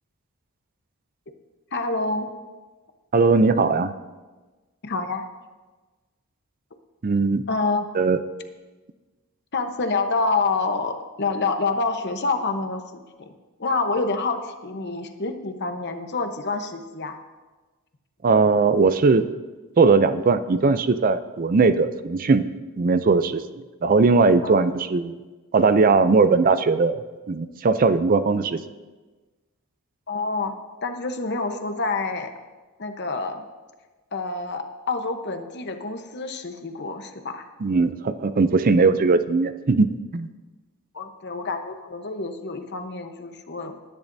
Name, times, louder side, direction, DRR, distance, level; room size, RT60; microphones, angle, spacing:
voice 1, 1.7-2.3 4.8-5.2 7.5-7.8 9.5-13.3 13.6-17.2 24.4-24.6 30.1-30.5 30.8-32.3 32.8-33.4 34.1-37.4 40.9-43.8, left 3 dB, 50° left, 6 dB, 1.0 m, -27 dB
voice 2, 3.1-3.9 7.0-7.4 7.9-8.2 18.2-19.2 19.8-22.4 22.8-23.4 23.8-25.1 25.5-27.0 27.3-28.6 37.6-40.3, right 4 dB, 40° right, 12 dB, 0.5 m, -19 dB
20.5 x 10.5 x 2.7 m, 1.3 s
head